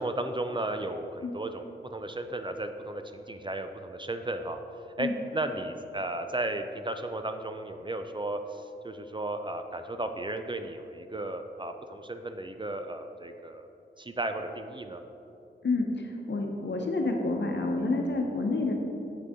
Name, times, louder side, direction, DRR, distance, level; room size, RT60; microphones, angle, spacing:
voice 1, 0.0-4.6 5.0-13.7 14.0-15.0, right 2 dB, 25° right, 7 dB, 0.4 m, -34 dB
voice 2, 15.6-18.7, left 2 dB, 65° left, 2 dB, 0.9 m, -29 dB
7.7 x 6.5 x 3.6 m, 2.8 s
wide cardioid pair, 100°, 19 cm